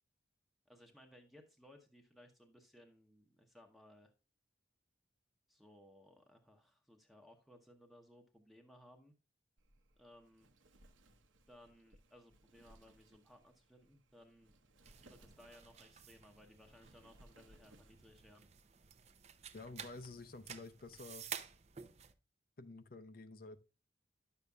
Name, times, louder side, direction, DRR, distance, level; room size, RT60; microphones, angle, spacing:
voice 1, 0.7-4.1 5.5-9.1 10.0-10.5 11.5-14.5 15.1-18.4, left 1 dB, ahead, 0.8 m, -62 dB
Wind, 9.6-18.2, right 1 dB, 85° right, 1.0 m, -66 dB
sound 1, 14.8-22.1, right 8 dB, 35° right, 0.5 m, -52 dB
voice 2, 19.5-21.2 22.6-23.6, left 3 dB, 45° left, 0.6 m, -50 dB
10.5 x 6.9 x 2.3 m
head